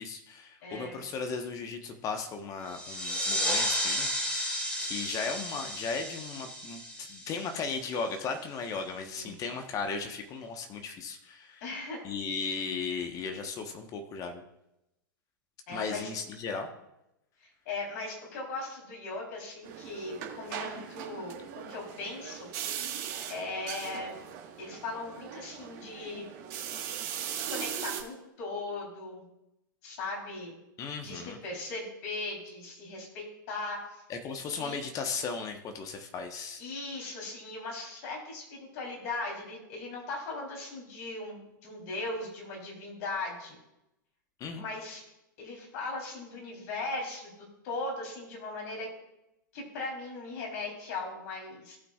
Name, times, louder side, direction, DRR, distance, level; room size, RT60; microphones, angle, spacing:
voice 1, 0.0-4.1 4.8-11.6 12.0-14.4 15.7-16.7 30.8-31.4 34.1-36.6 44.4-44.6, left 5 dB, 30° left, 5 dB, 1.2 m, -36 dB
voice 2, 0.6-1.0 9.2-9.3 11.6-12.0 15.7-16.1 17.4-22.5 23.3-24.2 24.6-26.3 27.3-29.3 29.8-30.6 31.0-34.0 34.5-34.8 36.6-43.6 44.6-45.0 45.4-47.3 47.6-48.9 49.5-51.8, left 2 dB, 55° left, -1 dB, 3.7 m, -38 dB
sound 1, 2.7-8.0, equal, 15° left, 2.9 m, -33 dB
sound 2, 19.6-28.0, right 9 dB, 50° right, 1.6 m, -39 dB
17.5 x 6.0 x 2.4 m, 0.87 s
hypercardioid pair, 105°, 11 cm